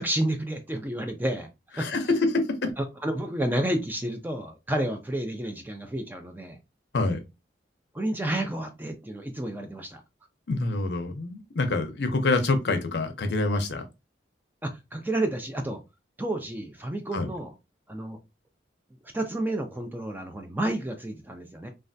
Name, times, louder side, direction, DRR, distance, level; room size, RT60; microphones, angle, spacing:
voice 1, 0.0-1.5 1.8-1.9 3.0-6.6 7.9-10.0 14.6-15.8 16.2-17.5 17.9-18.2 19.1-21.7, right 1 dB, 10° right, 0.4 m, -30 dB
voice 2, 1.8-2.7 6.9-7.2 10.5-13.8 17.1-17.3, left 2 dB, 65° left, 0.6 m, -26 dB
3.2 x 2.3 x 2.5 m
head